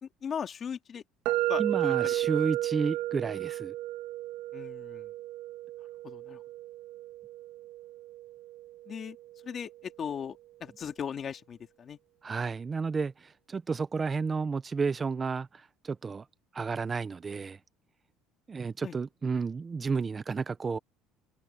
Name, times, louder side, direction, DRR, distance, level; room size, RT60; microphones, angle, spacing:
voice 1, 0.0-1.0 1.5-2.1 4.5-5.1 6.0-6.4 8.9-9.2 9.4-12.0 18.8-19.0, left 7 dB, 35° left, 2.3 m, -38 dB
sound 1, 1.3-9.1, right 15 dB, 65° right, 2.5 m, -33 dB
voice 2, 1.6-3.7 12.2-16.2 16.5-17.6 18.5-20.8, right 5 dB, 25° right, 0.6 m, -32 dB
cardioid pair, 125°, 0 cm